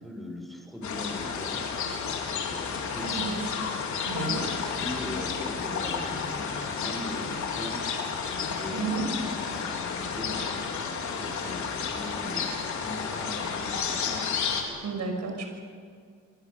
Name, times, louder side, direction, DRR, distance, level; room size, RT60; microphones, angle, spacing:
voice 1, 0.0-1.6 2.4-3.4 4.1-7.8 8.3-12.5 12.8-14.3, left 1 dB, ahead, 2 dB, 6.4 m, -40 dB
sound 1, 0.8-14.6, left 6 dB, 70° left, 4.1 m, -31 dB
voice 2, 3.0-3.4 4.0-4.4 8.7-9.0 14.8-15.5, right 5 dB, 65° right, 3 dB, 6.1 m, -32 dB
26.5 x 24.0 x 7.0 m, 2.1 s
cardioid pair, 90°, 30 cm